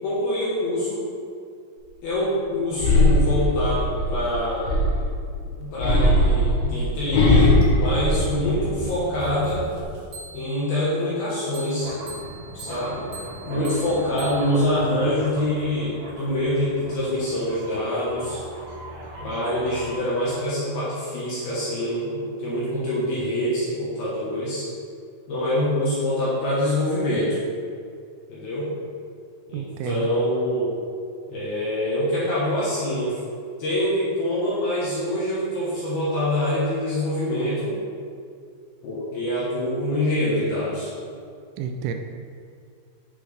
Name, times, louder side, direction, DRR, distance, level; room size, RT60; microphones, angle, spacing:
voice 1, 0.0-1.0 2.0-4.7 5.6-9.7 10.3-11.9 12.5-13.1 13.5-18.4 19.2-24.7 25.3-27.4 28.3-28.7 29.5-30.7 31.3-33.2 33.6-37.8 38.8-40.9, left 1 dB, 65° left, -9 dB, 3.0 m, -25 dB
sound 1, 2.8-5.2 5.8-8.9 9.3-9.8, left 1 dB, 90° left, 3.3 m, -20 dB
sound 2, 7.3-10.7 11.5-19.9, right 1 dB, 70° right, 2.6 m, -38 dB
voice 2, 29.5-30.1 41.6-41.9, right 7 dB, 90° right, 5 dB, 2.1 m, -29 dB
8.8 x 5.8 x 3.4 m, 2.3 s
omnidirectional pair, 4.9 m